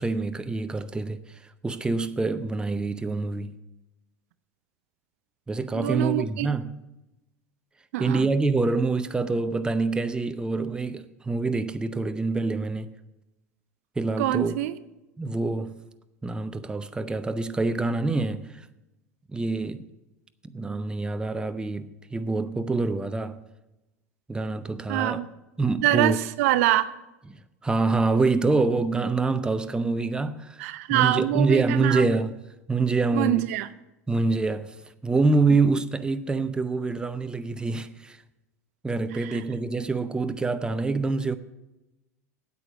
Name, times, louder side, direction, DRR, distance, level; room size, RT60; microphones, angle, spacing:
voice 1, 0.0-3.5 5.5-6.8 8.0-12.9 14.0-14.5 15.2-15.8 16.2-18.7 19.3-19.9 20.4-23.4 24.3-25.2 25.6-26.2 27.6-30.6 30.9-32.3 32.7-33.5 34.1-34.7 35.0-38.2 38.8-41.4, right 3 dB, 10° right, 0.7 m, -26 dB
voice 2, 5.7-6.5 7.9-8.3 14.2-14.7 24.9-25.3 25.8-26.9 30.6-32.1 33.1-33.7 39.2-39.4, right 14 dB, 65° right, 0.6 m, -25 dB
8.9 x 8.4 x 7.1 m
hypercardioid pair, 85°, 8 cm